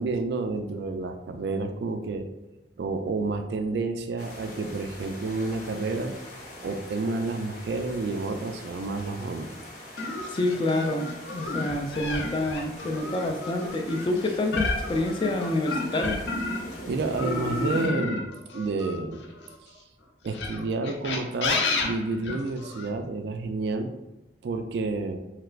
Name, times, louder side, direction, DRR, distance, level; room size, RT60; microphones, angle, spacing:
voice 1, 0.0-2.3 2.8-6.1 6.6-9.5 16.9-18.3 18.5-19.2 20.2-23.9 24.4-25.2, right 3 dB, 70° right, 7 dB, 0.3 m, -30 dB
sound 1, 4.2-17.9, left 1 dB, 45° left, 0.7 m, -43 dB
sound 2, 10.0-16.8 17.2-19.6 20.3-22.9, left 3 dB, 85° left, 0.5 m, -31 dB
voice 2, 10.3-16.2, left 2 dB, 30° left, 4 dB, 0.3 m, -27 dB
3.3 x 2.9 x 2.4 m, 0.99 s
head